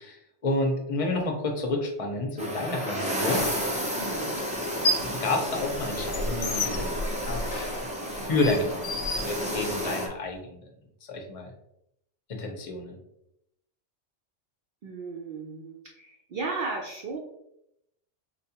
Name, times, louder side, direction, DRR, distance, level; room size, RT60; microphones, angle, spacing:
voice 1, 0.0-3.4 5.0-7.4 8.1-10.6 11.1-11.5 12.3-13.0, left 2 dB, 35° left, 1 dB, 0.6 m, -30 dB
sound 1, 2.4-10.1, equal, 10° right, 0.3 m, -31 dB
sound 2, 3.4-3.5 4.5-5.2 5.6-9.9, left 1 dB, 75° left, 0.9 m, -31 dB
voice 2, 4.0-4.4 14.8-17.2, right 3 dB, 60° right, 0 dB, 0.6 m, -35 dB
4.3 x 2.3 x 2.8 m, 0.79 s
omnidirectional pair, 1.2 m